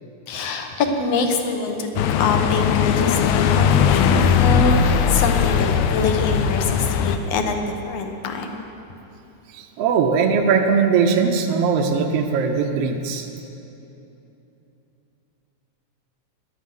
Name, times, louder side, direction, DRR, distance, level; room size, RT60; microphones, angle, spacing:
voice 1, 0.3-8.7, left 4 dB, 70° left, 4 dB, 1.8 m, -25 dB
sound 1, 2.0-7.2, left 7 dB, 90° left, 2.1 m, -19 dB
voice 2, 9.5-13.3, right 5 dB, 75° right, 2 dB, 1.5 m, -20 dB
11.0 x 9.4 x 7.7 m, 2.9 s
omnidirectional pair, 3.5 m